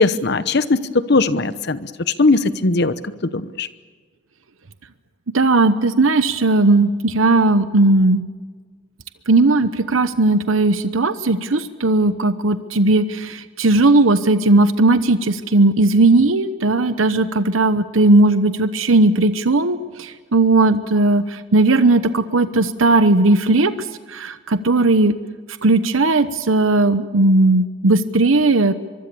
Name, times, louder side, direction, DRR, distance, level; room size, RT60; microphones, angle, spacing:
voice 1, 0.0-1.8 2.2-2.9 3.3-3.7, left 3 dB, 55° left, 13 dB, 1.0 m, -18 dB
voice 2, 5.3-8.2 9.3-19.8 20.3-21.2 21.5-23.7 24.1-25.1 25.6-28.7, right 2 dB, 85° right, 11 dB, 1.0 m, -16 dB
24.0 x 23.5 x 7.0 m, 1.5 s
head